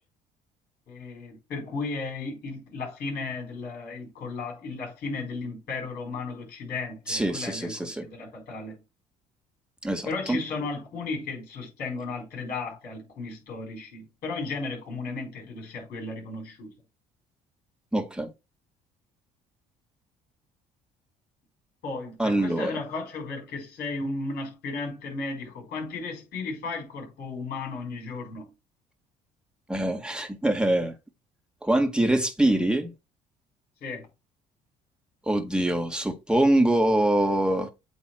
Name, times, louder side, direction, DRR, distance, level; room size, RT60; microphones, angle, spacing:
voice 1, 0.9-8.8 10.0-16.7 21.8-28.5 33.8-34.1, left 3 dB, 60° left, 4.7 m, -35 dB
voice 2, 7.1-8.0 9.8-10.4 17.9-18.3 22.2-22.8 29.7-31.0 31.6-32.9 35.2-37.7, right 1 dB, 5° right, 1.9 m, -24 dB
8.4 x 3.5 x 4.5 m
hypercardioid pair, 60°, 18 cm